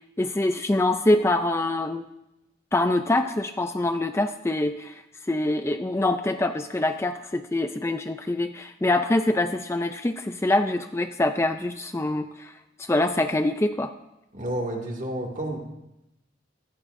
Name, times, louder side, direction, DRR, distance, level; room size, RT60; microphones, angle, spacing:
voice 1, 0.2-2.0 2.7-5.0 5.3-12.5 12.8-13.9, left 2 dB, 15° left, 7 dB, 0.4 m, -24 dB
voice 2, 14.3-15.6, right 1 dB, 40° right, 0 dB, 2.1 m, -30 dB
15.5 x 15.0 x 2.6 m, 0.92 s
head